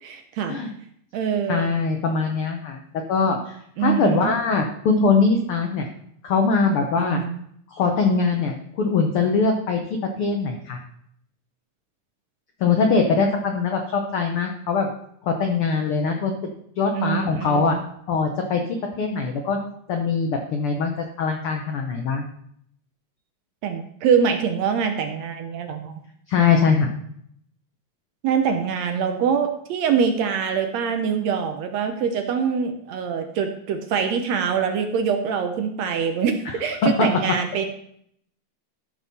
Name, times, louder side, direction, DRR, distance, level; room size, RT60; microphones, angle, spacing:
voice 1, 0.0-0.6 1.1-1.7 3.8-4.3 7.0-7.4 16.9-17.8 23.6-25.9 28.2-37.7, right 7 dB, 70° right, 6 dB, 1.7 m, -24 dB
voice 2, 1.5-2.8 3.1-5.9 6.2-7.2 7.7-9.8 10.2-10.8 12.6-14.9 15.2-16.4 16.8-17.8 18.1-18.6 19.0-19.6 19.9-22.3 26.3-26.9 36.8-37.1, left 4 dB, 80° left, 4 dB, 1.2 m, -22 dB
13.5 x 5.4 x 4.1 m, 0.69 s
omnidirectional pair, 3.6 m